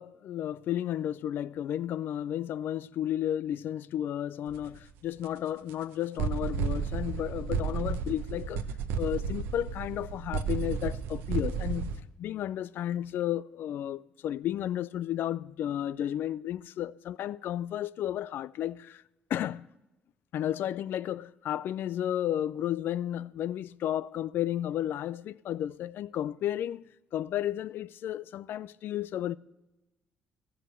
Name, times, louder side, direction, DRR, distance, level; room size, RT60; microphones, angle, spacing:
voice 1, 0.0-8.6 9.0-11.9 12.2-19.0 19.3-19.6 20.3-29.4, left 11 dB, 65° left, 0.4 m, -33 dB
sound 1, 4.5-4.8 5.2-5.3 5.7-5.8 6.2-12.0, right 6 dB, 80° right, 0.7 m, -32 dB
13.5 x 7.4 x 6.7 m
supercardioid pair, 60°, 4 cm